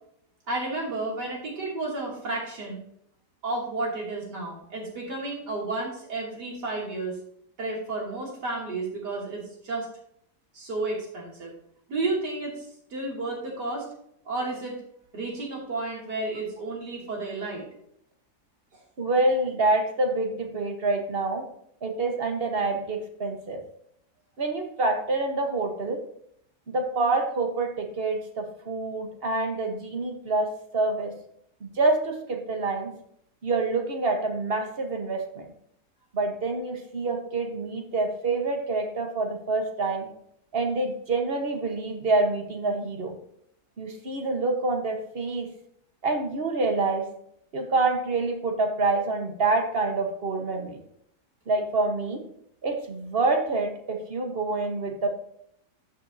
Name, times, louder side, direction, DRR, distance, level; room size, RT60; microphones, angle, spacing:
voice 1, 0.5-2.8 3.4-7.2 7.6-9.9 10.5-11.5 11.9-13.9 14.3-14.8 15.1-17.7 18.7-18.8, right 2 dB, 85° right, -3 dB, 3.3 m, -32 dB
voice 2, 19.0-21.5 21.8-23.6 24.4-26.0 26.7-31.1 31.6-32.9 33.4-35.5 36.1-40.1 40.5-43.2 43.8-45.5 46.0-47.1 47.5-50.8 51.5-52.3 52.6-55.1, right 3 dB, 40° right, 4 dB, 1.4 m, -27 dB
13.5 x 6.1 x 2.8 m, 0.71 s
omnidirectional pair, 1.8 m